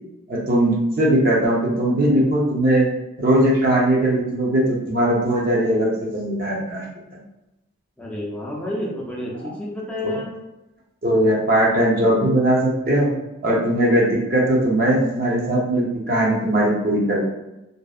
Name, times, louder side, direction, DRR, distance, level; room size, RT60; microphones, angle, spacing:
voice 1, 0.3-2.9 3.2-6.9 10.0-10.2 11.0-13.1 13.4-17.2, right 1 dB, 50° right, -4 dB, 0.7 m, -19 dB
voice 2, 8.0-10.3, left 1 dB, 5° left, -4 dB, 0.5 m, -29 dB
2.6 x 2.1 x 2.3 m, 0.94 s
head